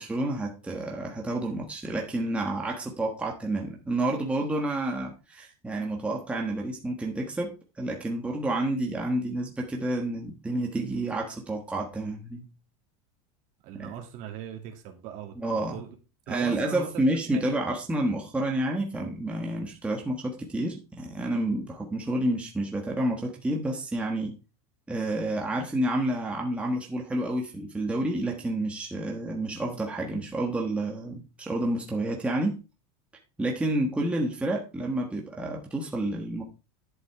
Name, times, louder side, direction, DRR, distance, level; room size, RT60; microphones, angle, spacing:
voice 1, 0.0-7.5 7.8-12.4 13.8-13.9 15.4-15.8 16.3-24.4 24.9-32.5 33.4-36.4, right 1 dB, 5° right, 0 dB, 1.3 m, -29 dB
voice 2, 13.6-15.9 16.3-17.5, right 9 dB, 45° right, 3 dB, 2.4 m, -40 dB
11.0 x 7.9 x 3.5 m, 0.31 s
supercardioid pair, 160°, 17 cm